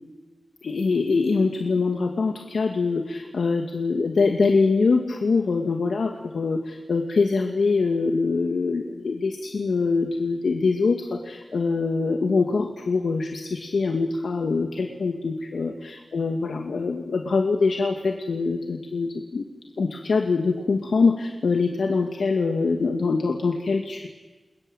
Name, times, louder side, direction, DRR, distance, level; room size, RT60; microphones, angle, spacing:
voice 1, 0.6-19.4 19.8-24.1, left 4 dB, 90° left, 4 dB, 2.3 m, -24 dB
29.0 x 21.5 x 9.2 m, 1.3 s
wide cardioid pair, 90°, 0 cm